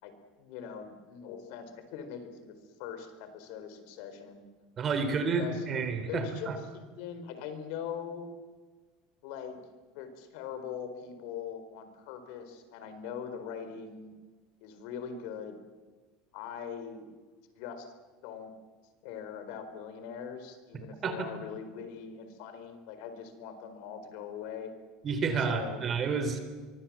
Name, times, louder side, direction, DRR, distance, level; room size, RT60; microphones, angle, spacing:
voice 1, 0.0-4.4 5.0-5.6 6.1-8.3 9.2-9.6 9.9-14.1 14.6-15.6 16.3-17.1 17.5-17.9 18.2-18.5 19.0-24.7 25.5-25.8, left 7 dB, 65° left, 9 dB, 4.3 m, -42 dB
voice 2, 4.8-6.6 21.0-21.3 25.0-26.4, right 5 dB, 30° right, 8 dB, 3.6 m, -30 dB
25.0 x 24.0 x 7.5 m, 1.4 s
cardioid pair, 155°, 0 cm